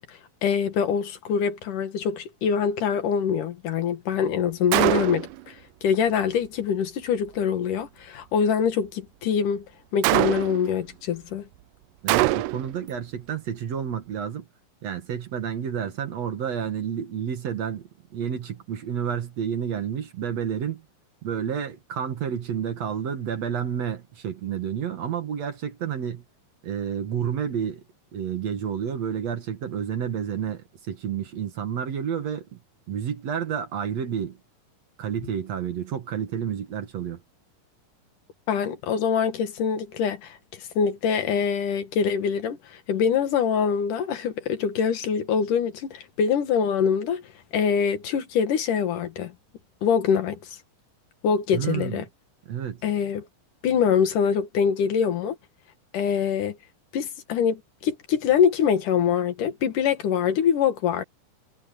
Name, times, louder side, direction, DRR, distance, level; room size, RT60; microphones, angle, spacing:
voice 1, 0.0-5.6 5.8-9.7 9.9-11.5 38.5-47.2 47.5-49.3 49.8-50.6 51.2-52.0 52.8-53.3 53.6-55.4 55.9-56.6 56.9-61.0, left 7 dB, 75° left, 3.3 m, -24 dB
Gunshot gunfire, 4.7-5.4 10.0-10.7 12.1-12.8, right 19 dB, 80° right, 2.1 m, -22 dB
voice 2, 12.0-14.4 14.8-20.8 21.2-26.2 26.6-27.8 28.1-32.6 32.9-34.4 35.0-37.2 51.5-52.1 52.5-52.8, right 8 dB, 55° right, 2.6 m, -30 dB
omnidirectional pair, 3.8 m